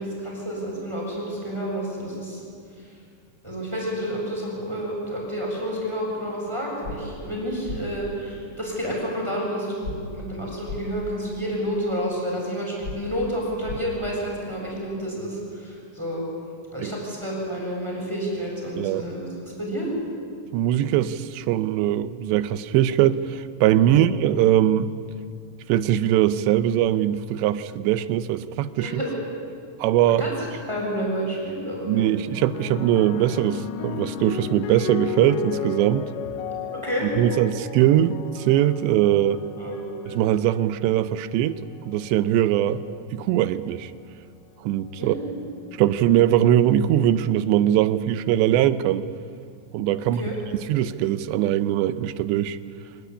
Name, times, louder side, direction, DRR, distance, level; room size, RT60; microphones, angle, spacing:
voice 1, 0.0-2.4 3.4-16.2 16.7-19.9 23.9-24.1 28.8-29.1 30.2-32.1 36.7-37.1 39.6-39.8 45.0-45.3 50.0-50.4, equal, 5° right, -3 dB, 7.1 m, -30 dB
sound 1, 6.8-7.0 7.6-7.8 9.8-10.0 10.6-10.8 12.8-13.0 13.6-13.8, left 4 dB, 25° left, 4.4 m, -33 dB
voice 2, 18.8-19.1 20.5-24.9 25.7-29.0 29.8-30.2 31.9-36.1 37.2-39.4 40.2-41.6 41.9-42.8 43.1-43.9 44.6-45.2 45.8-49.1 49.7-50.2 50.5-52.6, right 12 dB, 85° right, 13 dB, 3.0 m, -21 dB
sound 2, 32.3-40.9 41.8-42.2, left 12 dB, 85° left, 3.3 m, -34 dB
25.0 x 20.5 x 9.9 m, 2.2 s
omnidirectional pair, 5.0 m